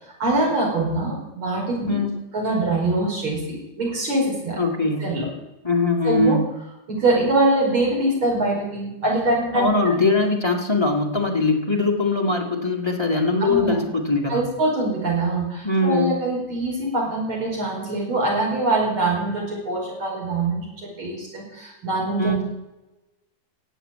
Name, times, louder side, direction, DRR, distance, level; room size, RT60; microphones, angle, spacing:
voice 1, 0.2-2.0 2.3-4.6 5.0-5.3 6.0-6.4 6.9-9.7 13.4-13.8 14.3-22.4, right 2 dB, 40° right, -3 dB, 6.0 m, -23 dB
voice 2, 1.9-2.2 4.6-5.2 5.6-6.5 9.5-14.5 15.6-16.2 22.2-22.4, left 3 dB, 15° left, 0 dB, 1.3 m, -21 dB
15.5 x 8.1 x 9.1 m, 1.0 s
omnidirectional pair, 3.6 m